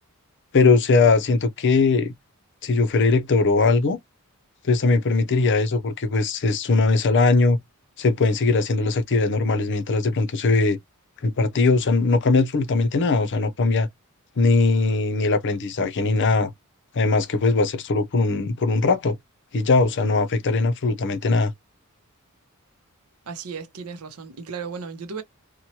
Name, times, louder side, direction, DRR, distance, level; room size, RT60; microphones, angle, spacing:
voice 1, 0.5-2.1 2.6-4.0 4.7-7.6 8.0-10.8 11.2-13.9 14.4-16.5 16.9-19.2 19.5-21.5, left 3 dB, 55° left, 0.6 m, -20 dB
voice 2, 23.3-25.2, right 5 dB, 75° right, 0.7 m, -35 dB
3.0 x 2.2 x 2.8 m
head